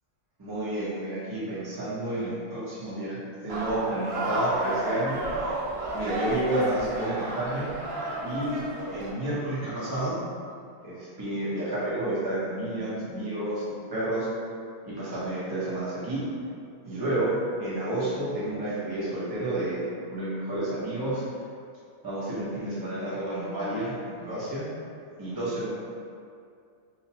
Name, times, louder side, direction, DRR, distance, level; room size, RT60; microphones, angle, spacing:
voice 1, 0.4-5.2 5.9-7.7 8.2-8.5 8.9-10.2 10.8-14.3 14.8-16.2 16.8-19.8 20.1-21.2 22.0-24.7 25.2-25.7, right 1 dB, 25° right, -9 dB, 0.5 m, -30 dB
sound 1, 3.5-9.1, right 2 dB, 65° right, 0.6 m, -32 dB
2.9 x 2.1 x 2.8 m, 2.3 s
omnidirectional pair, 1.4 m